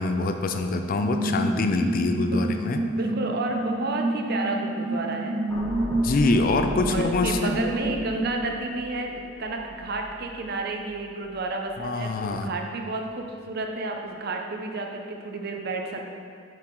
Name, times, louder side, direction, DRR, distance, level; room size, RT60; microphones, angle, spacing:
voice 1, 0.0-2.8 6.0-7.6 11.8-12.5, left 3 dB, 45° left, 6 dB, 0.4 m, -25 dB
sound 1, 1.0-8.3, right 2 dB, 10° right, 1.4 m, -29 dB
voice 2, 2.9-5.4 6.9-16.1, right 2 dB, 50° right, 2 dB, 0.6 m, -31 dB
sound 2, 5.5-11.8 12.2-12.4, equal, 10° left, 1.6 m, -38 dB
7.4 x 4.6 x 3.8 m, 2.4 s
head